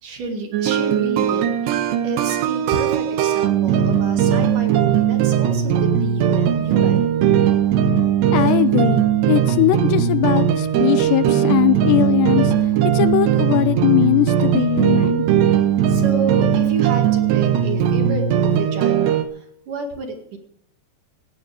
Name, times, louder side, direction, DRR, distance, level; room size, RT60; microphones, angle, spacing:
voice 1, 0.0-7.1 15.9-20.4, right 3 dB, 55° right, 3 dB, 3.3 m, -30 dB
sound 1, 0.5-19.2, right 9 dB, 80° right, 3.2 m, -18 dB
voice 2, 8.3-12.5 12.9-15.4, left 15 dB, 80° left, 14 dB, 2.7 m, -20 dB
17.5 x 16.5 x 3.5 m, 0.70 s
omnidirectional pair, 5.0 m